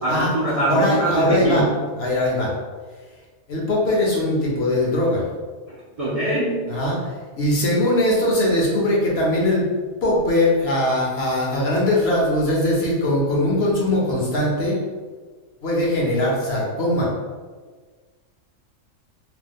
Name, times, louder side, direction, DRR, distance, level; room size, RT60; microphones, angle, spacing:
voice 1, 0.0-1.7 6.0-6.6, right 1 dB, 50° right, -8 dB, 0.4 m, -22 dB
voice 2, 0.7-1.6 2.0-2.5 3.5-5.2 6.7-9.7 10.0-14.8 15.6-17.1, left 1 dB, 60° left, -3 dB, 0.9 m, -21 dB
3.0 x 2.0 x 3.4 m, 1.4 s
omnidirectional pair, 1.3 m